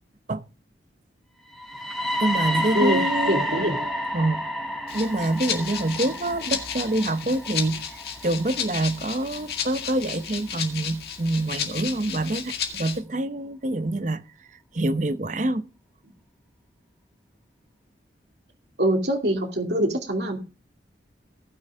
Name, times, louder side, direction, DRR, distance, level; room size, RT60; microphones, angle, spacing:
sound 1, 1.5-9.4, equal, ahead, 3.2 m, -30 dB
voice 1, 2.2-4.4 4.9-14.2 14.7-15.7, right 2 dB, 40° right, 0.8 m, -26 dB
voice 2, 3.3-3.8 18.8-20.4, right 1 dB, 65° right, 2.6 m, -23 dB
Rattle (instrument), 4.9-13.0, left 8 dB, 60° left, 1.9 m, -33 dB
18.5 x 6.4 x 3.5 m
head